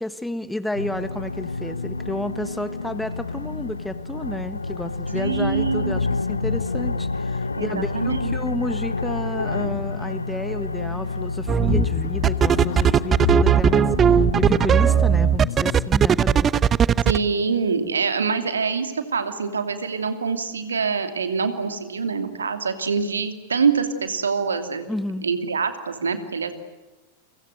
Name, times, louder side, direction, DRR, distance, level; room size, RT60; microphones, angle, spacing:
voice 1, 0.0-16.5 24.9-25.3, left 1 dB, 5° left, 12 dB, 1.5 m, -31 dB
sound 1, 0.7-15.4, left 3 dB, 80° left, 1.1 m, -29 dB
voice 2, 5.1-6.0 7.6-8.3 17.0-24.9 25.2-26.5, right 5 dB, 70° right, 8 dB, 2.8 m, -25 dB
sound 2, 11.5-11.9 12.2-17.2, right 8 dB, 25° right, 0.8 m, -17 dB
sound 3, 11.6-16.6, left 11 dB, 50° left, 1.3 m, -29 dB
30.0 x 24.5 x 8.0 m, 1.1 s
figure-of-eight pair, 90°, 0 cm